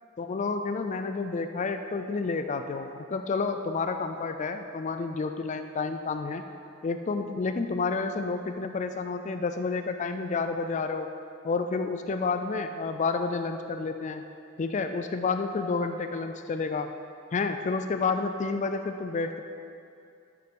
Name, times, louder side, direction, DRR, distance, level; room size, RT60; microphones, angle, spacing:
voice 1, 0.2-6.5 6.8-11.1 11.4-14.2 14.6-17.0 17.3-19.4, left 4 dB, 35° left, 7 dB, 0.3 m, -30 dB
12.0 x 6.0 x 5.3 m, 2.6 s
head